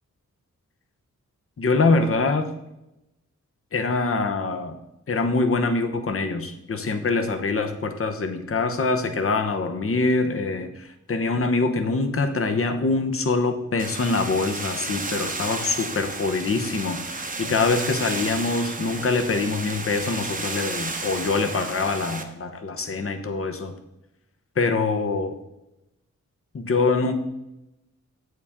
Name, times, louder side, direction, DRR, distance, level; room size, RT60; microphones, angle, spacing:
voice 1, 1.6-2.5 3.7-4.8 5.1-23.7 24.6-25.4 26.5-27.1, left 3 dB, 45° left, 8 dB, 0.9 m, -24 dB
sound 1, 13.8-22.2, right 3 dB, 25° right, 0.9 m, -32 dB
8.5 x 7.7 x 3.6 m, 0.90 s
wide cardioid pair, 125°, 31 cm